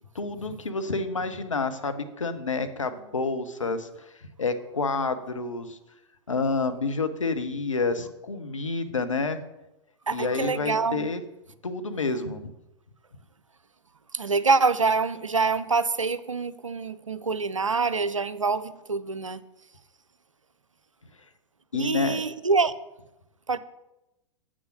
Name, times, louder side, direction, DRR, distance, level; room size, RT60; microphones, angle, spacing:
voice 1, 0.1-3.9 4.2-5.8 6.3-9.4 10.1-11.2 11.6-12.5 21.7-22.2, left 3 dB, 80° left, 8 dB, 0.9 m, -29 dB
voice 2, 10.1-11.0 14.1-19.4 21.7-22.7 23.5-23.6, right 4 dB, 85° right, 14 dB, 0.5 m, -25 dB
7.9 x 6.2 x 6.1 m, 0.94 s
figure-of-eight pair, 100°, 16 cm